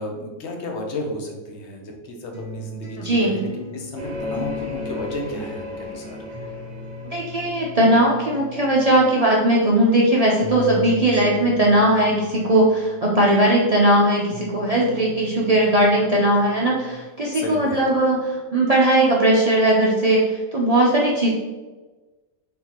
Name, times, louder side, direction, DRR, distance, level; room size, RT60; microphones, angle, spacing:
voice 1, 0.0-6.2 17.3-17.8, left 1 dB, 55° left, 2 dB, 0.9 m, -33 dB
sound 1, 2.3-9.0 9.3-17.0 17.4-18.3, right 1 dB, 20° left, 1.0 m, -38 dB
voice 2, 3.0-3.4 7.0-21.3, right 1 dB, 60° right, -4 dB, 0.4 m, -18 dB
sound 2, 4.0-9.6, left 4 dB, 35° right, 0.8 m, -35 dB
4.0 x 3.7 x 2.9 m, 1.2 s
omnidirectional pair, 1.5 m